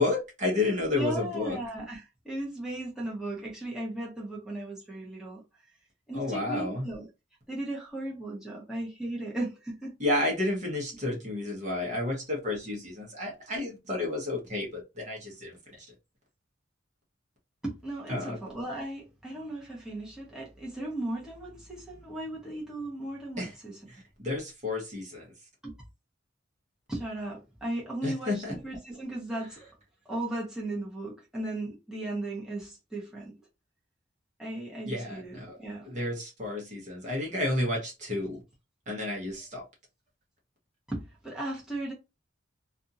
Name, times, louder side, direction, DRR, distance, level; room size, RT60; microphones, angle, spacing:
voice 1, 0.0-1.6 6.1-6.9 10.0-15.9 18.1-18.4 23.4-23.5 23.9-25.3 28.0-28.6 34.8-35.6 35.8-38.4 38.9-39.6, left 2 dB, 40° right, 1.0 m, -31 dB
voice 2, 1.0-5.4 6.1-7.1 7.5-9.9 10.4-10.5 17.6-23.9 25.6-25.8 26.9-29.7 30.0-33.3 34.4-35.9 40.9-41.9, right 1 dB, 5° right, 0.9 m, -36 dB
2.6 x 2.4 x 2.7 m
head